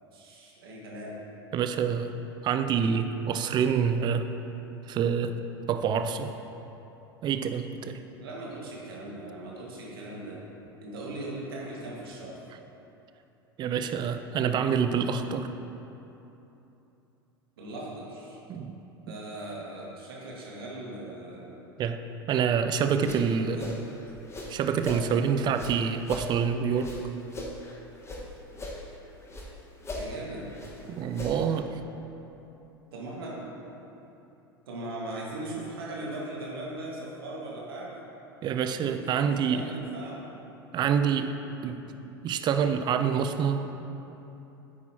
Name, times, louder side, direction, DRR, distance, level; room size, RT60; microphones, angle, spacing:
voice 1, 0.1-1.2 8.2-10.4 10.8-12.5 17.6-18.4 19.1-21.6 22.9-23.9 29.9-30.5 32.9-33.7 34.7-38.0 39.1-40.3, right 1 dB, 70° right, -4 dB, 1.8 m, -39 dB
voice 2, 1.5-2.1 2.4-4.3 4.9-5.3 5.7-6.3 7.2-8.0 13.6-15.5 18.5-18.8 21.8-23.6 24.5-26.9 30.9-31.7 38.4-39.6 40.7-41.3 41.6-41.8 42.2-43.8, right 7 dB, 35° right, 9 dB, 0.5 m, -27 dB
sound 1, 22.8-25.1 25.5-28.2 28.5-29.5 29.8-31.6, left 1 dB, 20° left, 1.5 m, -40 dB
9.9 x 8.3 x 2.9 m, 3.0 s
figure-of-eight pair, 80°, 13 cm